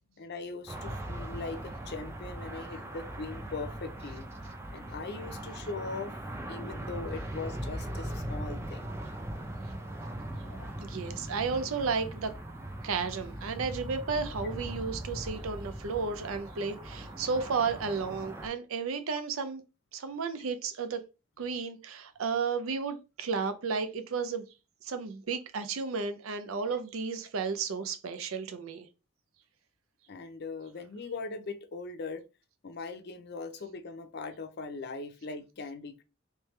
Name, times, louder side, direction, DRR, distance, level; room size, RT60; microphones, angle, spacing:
voice 1, 0.2-4.3 4.7-6.1 6.5-8.9 10.4-10.7 30.1-32.2 32.6-36.0, left 3 dB, 50° left, 0.6 m, -40 dB
sound 1, 0.7-18.5, right 1 dB, 15° right, 0.5 m, -40 dB
voice 2, 10.8-12.3 12.8-19.6 19.9-21.0 21.4-24.4 24.8-28.9, right 5 dB, 80° right, 0.5 m, -33 dB
3.3 x 3.3 x 3.1 m
head